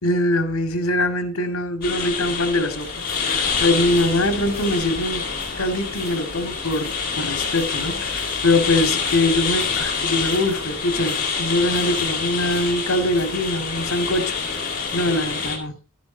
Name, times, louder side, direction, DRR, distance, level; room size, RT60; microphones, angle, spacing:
voice 1, 0.0-5.2 5.5-14.3 14.9-15.7, left 1 dB, 70° left, 2.1 m, -23 dB
sound 1, 1.8-15.6, left 5 dB, 45° left, 3.3 m, -26 dB
sound 2, 2.8-15.5, right 2 dB, 65° right, 4.5 m, -42 dB
13.0 x 10.5 x 3.9 m
head